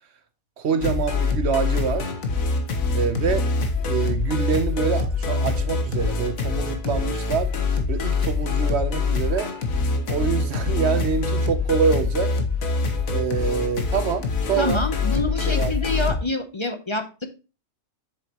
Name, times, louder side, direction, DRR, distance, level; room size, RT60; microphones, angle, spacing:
voice 1, 0.6-2.1 2.9-3.5 3.8-7.5 7.9-9.5 10.1-12.3 13.1-14.9 15.5-15.7, right 6 dB, 55° right, 1.1 m, -25 dB
sound 1, 0.8-16.2, left 3 dB, 85° left, 1.6 m, -24 dB
voice 2, 14.6-17.3, left 2 dB, 25° left, 0.7 m, -27 dB
7.6 x 7.2 x 2.9 m
omnidirectional pair, 1.4 m